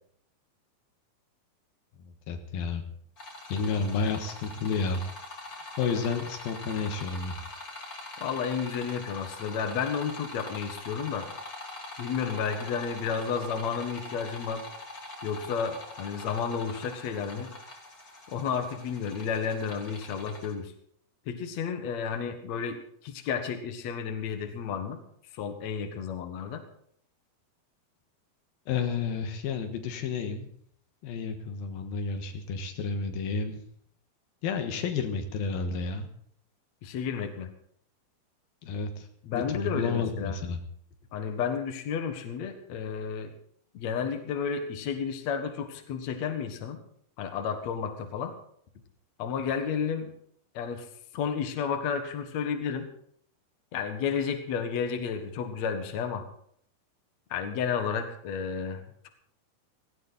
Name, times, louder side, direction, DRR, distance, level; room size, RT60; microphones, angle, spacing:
voice 1, 2.0-2.8 3.5-5.0 5.8-7.4 28.7-30.5 31.0-33.6 34.4-36.1 38.6-39.1 39.3-40.6, left 5 dB, 85° left, 6 dB, 3.2 m, -31 dB
sound 1, 3.2-20.5, left 2 dB, 25° left, 3.0 m, -43 dB
voice 2, 8.2-11.3 12.0-14.7 15.2-17.5 18.3-20.7 21.3-22.8 23.0-25.0 25.3-26.6 36.8-37.5 39.2-40.4 41.1-43.3 43.7-46.8 47.2-48.3 49.2-50.1 50.5-50.9 51.1-52.9 53.7-56.3 57.3-59.1, left 6 dB, 55° left, 6 dB, 2.6 m, -32 dB
17.5 x 16.0 x 4.1 m, 0.65 s
omnidirectional pair, 4.1 m